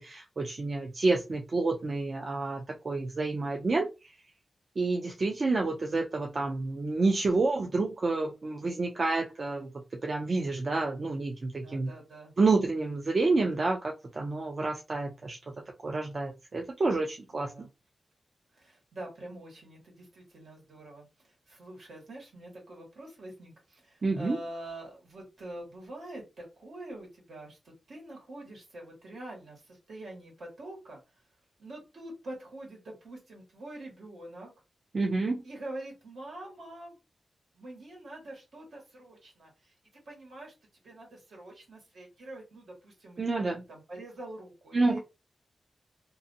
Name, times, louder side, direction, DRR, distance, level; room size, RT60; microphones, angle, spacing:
voice 1, 0.0-3.9 4.8-9.7 10.0-11.9 12.4-15.4 15.8-17.7 24.0-24.4 34.9-35.4 43.2-43.6 44.7-45.0, right 3 dB, 45° right, 1 dB, 0.4 m, -29 dB
voice 2, 11.6-12.3 17.5-17.7 18.5-31.0 31.6-34.5 35.4-37.0 37.5-39.7 40.0-40.5 40.8-45.0, right 1 dB, 75° right, -1 dB, 1.5 m, -45 dB
2.6 x 2.5 x 2.6 m, 0.26 s
wide cardioid pair, 110°, 0 cm